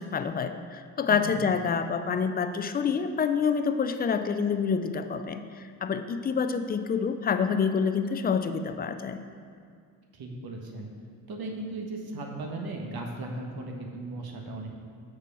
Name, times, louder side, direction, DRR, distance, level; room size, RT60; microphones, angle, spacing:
voice 1, 0.0-9.2, left 6 dB, 20° left, 9 dB, 0.3 m, -27 dB
voice 2, 1.1-1.4 10.1-10.9 11.3-14.7, right 2 dB, 45° right, 1 dB, 1.4 m, -37 dB
6.5 x 4.8 x 6.2 m, 2.2 s
hypercardioid pair, 55°, 50 cm